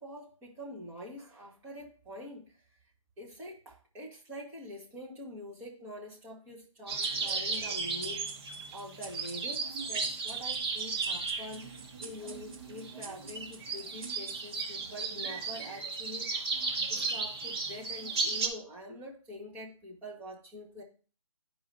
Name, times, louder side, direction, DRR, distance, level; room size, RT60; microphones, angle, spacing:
voice 1, 0.0-2.6 3.2-8.3 8.7-20.8, equal, 10° right, -4 dB, 1.4 m, -45 dB
sound 1, 6.9-18.5, right 4 dB, 45° right, 1.6 m, -35 dB
sound 2, 7.0-14.8, right 3 dB, 75° right, 1.5 m, -50 dB
12.0 x 4.8 x 2.7 m, 0.38 s
figure-of-eight pair, 155°, 18 cm